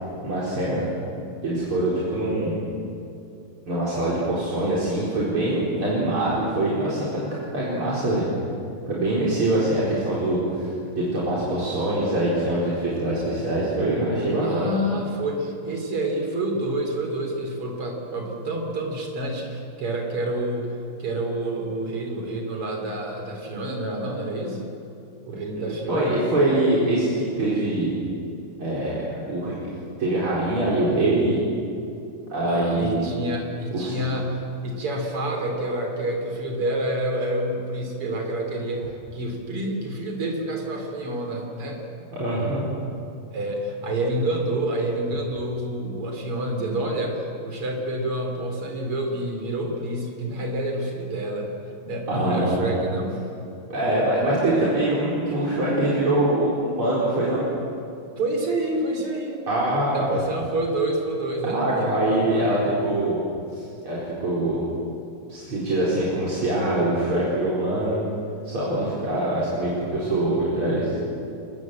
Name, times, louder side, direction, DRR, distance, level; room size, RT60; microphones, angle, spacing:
voice 1, 0.2-0.9 1.4-2.6 3.7-7.1 7.5-8.3 8.9-10.7 11.0-14.7 25.6-27.9 28.6-29.5 30.0-31.4 32.3-33.1 33.7-34.0 42.1-42.6 52.1-52.7 53.7-57.4 59.5-60.1 61.4-63.2 63.8-64.7 65.3-68.0 68.5-71.0, right 1 dB, 70° right, -7 dB, 5.5 m, -23 dB
voice 2, 14.4-20.7 21.0-24.6 25.2-26.2 32.5-41.8 43.3-51.5 51.8-53.2 58.2-59.4 59.9-62.6, right 1 dB, 90° right, 2 dB, 4.6 m, -28 dB
29.5 x 20.0 x 7.8 m, 2.7 s
omnidirectional pair, 2.4 m